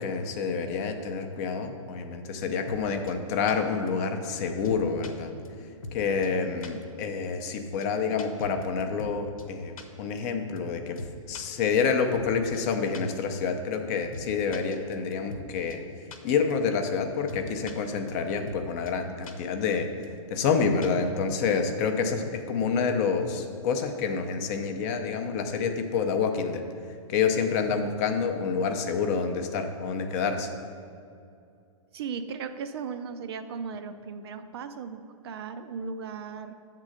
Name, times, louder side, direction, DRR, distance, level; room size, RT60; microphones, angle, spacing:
voice 1, 0.0-5.3 5.9-11.0 11.3-15.8 16.2-19.9 20.3-26.6 27.1-30.5, left 5 dB, 30° left, 5 dB, 0.5 m, -28 dB
sound 1, 2.7-2.8 3.1-3.2 3.5-3.6 3.9-4.0 4.2-4.3 4.6-5.1 5.4-5.5 5.8-6.0 6.2-6.3 6.6-6.7 7.0-7.1 7.4-7.5 7.8-7.9 8.2-9.1 9.4-9.5 9.8-9.9 10.2-10.3 10.6-10.7 11.0-11.4 11.8-11.9 12.1-12.3 12.5-12.6 12.9-13.0 13.3-13.4 13.7-13.8 14.1-14.3 14.5-15.4 15.7-15.8 16.1-16.2 16.5-16.6 16.9-17.0 17.3-17.7 18.1-18.2 18.5-18.6 18.9-19.0 19.2-19.3 19.7-19.8 20.0-20.1 20.4-20.5 20.8-21.0, left 2 dB, 80° left, 0.9 m, -40 dB
voice 2, 31.9-36.5, right 5 dB, 45° right, 9 dB, 0.4 m, -37 dB
7.3 x 3.7 x 6.4 m, 2.4 s
hypercardioid pair, 150°, 18 cm